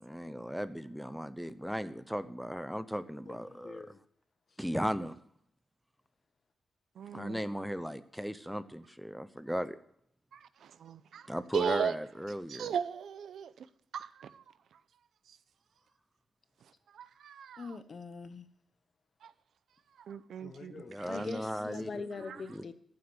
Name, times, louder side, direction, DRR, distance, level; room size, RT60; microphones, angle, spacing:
voice 1, 0.0-3.9 4.6-5.2 7.1-9.8 11.3-12.7 20.9-21.9 22.5-22.6, equal, ahead, 0.8 m, -36 dB
voice 2, 3.2-4.0 17.6-18.5 20.4-22.7, left 4 dB, 45° left, 1.1 m, -43 dB
voice 3, 7.0-7.4 10.3-11.3 11.5-11.9 12.5-13.7 13.9-14.4 16.9-17.7 19.2-19.3 20.0-21.2, right 8 dB, 85° right, 0.7 m, -37 dB
14.5 x 7.9 x 7.1 m
wide cardioid pair, 130°, 0 cm